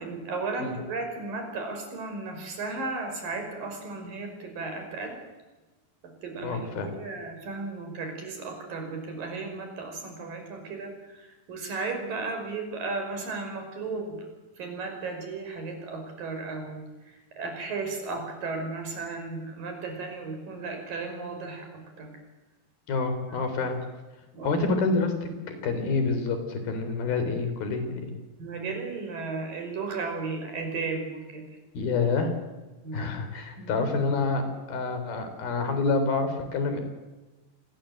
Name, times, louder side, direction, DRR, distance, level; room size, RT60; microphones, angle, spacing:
voice 1, 0.0-5.2 6.2-14.2 14.6-21.7 22.0-22.1 23.3-23.4 24.3-24.6 28.4-31.4 32.8-33.1 33.6-33.8, right 3 dB, 70° right, 4 dB, 7.0 m, -35 dB
voice 2, 6.4-6.9 22.9-23.8 24.4-28.1 31.7-32.3 32.9-34.4 34.7-36.8, left 4 dB, 85° left, 8 dB, 5.6 m, -27 dB
27.0 x 21.0 x 7.8 m, 1.2 s
omnidirectional pair, 4.2 m